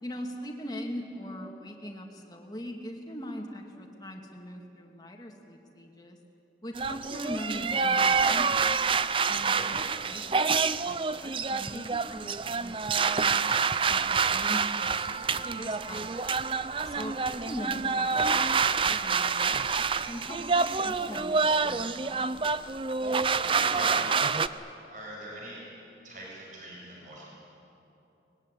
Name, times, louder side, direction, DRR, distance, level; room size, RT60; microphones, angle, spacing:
voice 1, 0.0-6.2 6.6-8.7 9.3-13.5 13.9-14.9 15.4-16.3 16.9-22.5, equal, 20° left, 2 dB, 2.4 m, -41 dB
sound 1, 6.7-24.5, right 5 dB, 30° right, 0.5 m, -27 dB
voice 2, 23.3-24.3 24.9-25.6 26.0-27.3, equal, 45° right, -4 dB, 7.4 m, -41 dB
24.0 x 20.5 x 10.0 m, 2.9 s
head